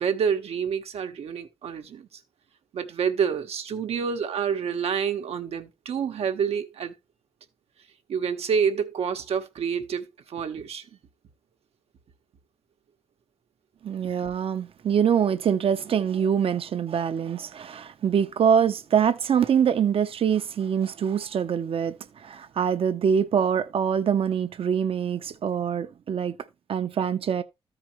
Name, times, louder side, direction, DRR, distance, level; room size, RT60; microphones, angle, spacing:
voice 1, 0.0-2.1 2.7-6.9 8.1-10.8, right 7 dB, 85° right, 1.1 m, -28 dB
voice 2, 13.8-21.9 22.2-26.4 26.7-27.4, right 8 dB, 65° right, 0.8 m, -24 dB
13.5 x 5.0 x 3.0 m
cardioid pair, 100°, 10 cm